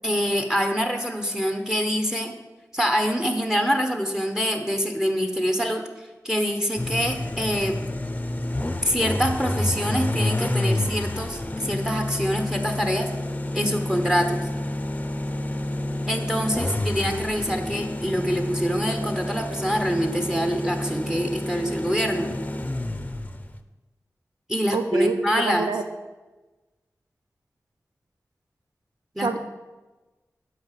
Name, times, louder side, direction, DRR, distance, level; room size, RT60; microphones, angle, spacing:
voice 1, 0.0-2.3 2.7-5.8 6.2-7.8 8.8-13.1 13.5-14.5 16.1-22.3 24.5-25.7 29.1-29.3, equal, 10° right, 5 dB, 1.2 m, -25 dB
sound 1, 6.8-23.6, left 1 dB, 25° left, 0.8 m, -29 dB
voice 2, 24.7-25.8 29.2-29.4, right 3 dB, 85° right, 6 dB, 0.6 m, -26 dB
8.4 x 5.7 x 7.6 m, 1.2 s
cardioid pair, 45°, 6 cm